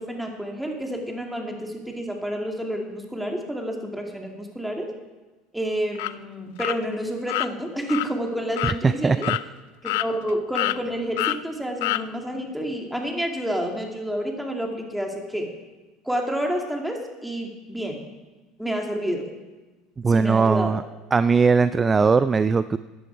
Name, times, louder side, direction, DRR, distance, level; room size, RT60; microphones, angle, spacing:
voice 1, 0.0-4.9 5.5-9.3 9.8-15.5 16.1-18.1 18.6-19.3 20.1-20.8, equal, 5° right, 1 dB, 2.4 m, -29 dB
sound 1, 5.9-6.1 6.6-6.8 7.3-7.5 7.9-8.1 8.6-8.8 9.2-9.4 9.8-10.3 10.5-10.8 11.2-11.4 11.8-12.0, left 18 dB, 80° left, 0.4 m, -26 dB
voice 2, 8.8-9.4 20.0-20.8 21.1-22.8, right 5 dB, 25° right, 14 dB, 0.4 m, -19 dB
14.5 x 10.0 x 4.6 m, 1.2 s
supercardioid pair, 95°, 0 cm